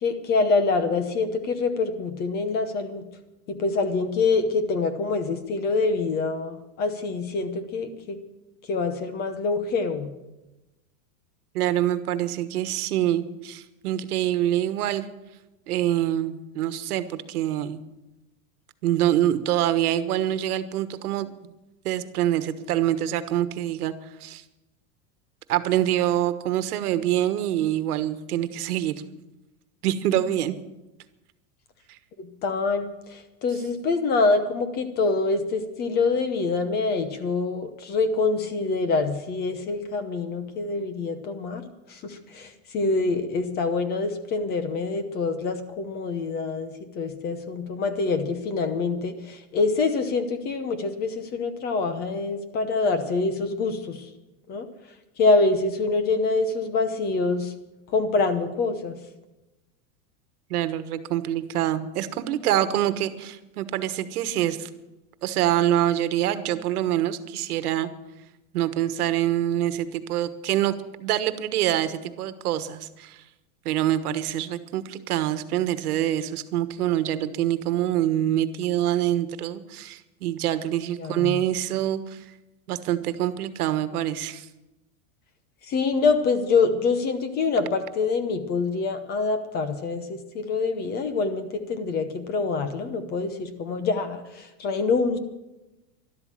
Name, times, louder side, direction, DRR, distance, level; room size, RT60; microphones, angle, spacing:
voice 1, 0.0-3.0 3.5-8.2 8.7-10.1 32.2-41.6 41.9-54.1 54.5-54.7 55.2-57.5 57.9-59.0 81.0-81.4 85.7-95.2, left 3 dB, 20° left, 10 dB, 0.9 m, -25 dB
voice 2, 11.5-15.0 15.7-17.8 18.8-21.3 21.8-23.9 24.2-24.4 25.5-29.0 29.8-30.6 60.5-64.7 65.2-67.9 68.5-70.7 71.0-73.2 73.6-82.2 82.7-84.5, right 12 dB, 80° right, 12 dB, 1.4 m, -25 dB
12.5 x 12.0 x 7.4 m, 1.0 s
supercardioid pair, 165°, 44 cm